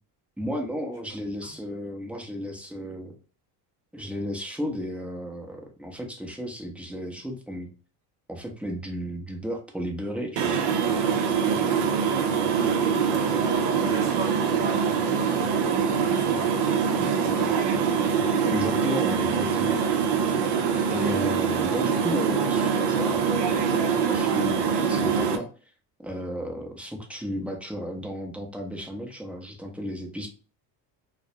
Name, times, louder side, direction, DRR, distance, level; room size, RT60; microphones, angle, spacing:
voice 1, 0.4-3.2 3.9-7.7 8.3-10.6 18.5-19.8 20.9-25.5 26.0-30.3, equal, 5° right, 1 dB, 0.6 m, -34 dB
sound 1, 10.4-25.4, right 6 dB, 70° right, 0.6 m, -24 dB
voice 2, 11.9-15.2 15.8-17.6, right 4 dB, 40° right, -2 dB, 0.8 m, -38 dB
2.3 x 2.1 x 2.7 m, 0.37 s
supercardioid pair, 80°, 46 cm